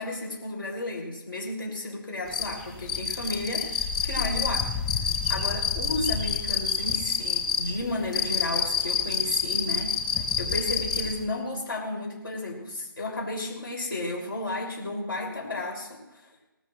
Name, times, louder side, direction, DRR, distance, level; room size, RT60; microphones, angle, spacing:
voice 1, 0.0-4.7 5.3-16.3, left 2 dB, 70° left, -1 dB, 6.0 m, -33 dB
sound 1, 2.3-11.2, left 7 dB, 20° left, 1.9 m, -27 dB
19.5 x 13.5 x 3.2 m, 1.0 s
figure-of-eight pair, 160°, 12 cm